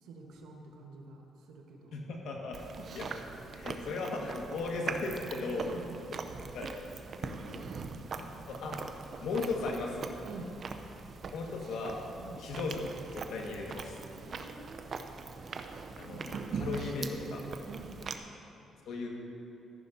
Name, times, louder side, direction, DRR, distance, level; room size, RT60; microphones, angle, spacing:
voice 1, 0.0-1.9 5.5-6.0 10.2-10.5 12.2-12.4 14.1-14.9 17.7-18.0, right 4 dB, 90° right, 1 dB, 1.3 m, -48 dB
voice 2, 1.9-2.6 2.9-3.1 3.5-5.7 6.5-6.7 7.2-7.8 8.1-8.8 9.2-10.0 11.3-12.0 12.4-14.0 15.9-17.4 18.8-19.1, left 3 dB, 80° left, 0 dB, 1.7 m, -37 dB
Chewing mastication, 2.5-18.2, right 4 dB, 50° right, 0.6 m, -42 dB
14.0 x 11.0 x 2.8 m, 2.8 s
cardioid pair, 90°, 0 cm